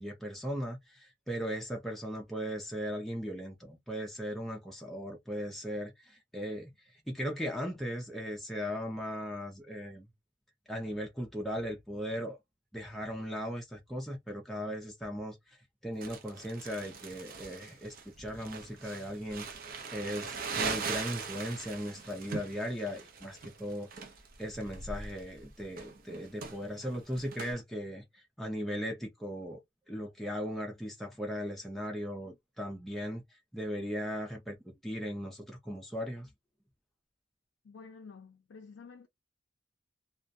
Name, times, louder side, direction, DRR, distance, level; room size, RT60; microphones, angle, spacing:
voice 1, 0.0-10.1 10.7-12.4 12.7-19.5 19.9-23.9 24.4-29.6 29.9-36.3, equal, ahead, 0.5 m, -38 dB
Crumpling crinkling, 16.0-27.5, right 5 dB, 50° right, 0.5 m, -41 dB
voice 2, 37.6-39.1, left 5 dB, 70° left, 0.4 m, -50 dB
2.3 x 2.1 x 2.6 m
head